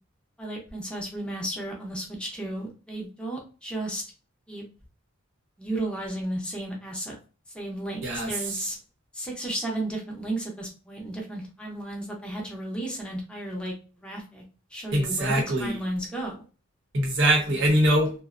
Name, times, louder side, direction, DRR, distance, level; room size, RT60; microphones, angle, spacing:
voice 1, 0.4-4.0 4.5-4.6 5.6-7.2 7.5-8.8 9.1-13.7 14.0-14.4 14.7-16.4, right 1 dB, 5° left, -2 dB, 0.6 m, -33 dB
voice 2, 14.9-15.8 16.9-18.1, right 1 dB, 60° right, 1 dB, 0.8 m, -23 dB
2.5 x 2.0 x 2.4 m, 0.35 s
head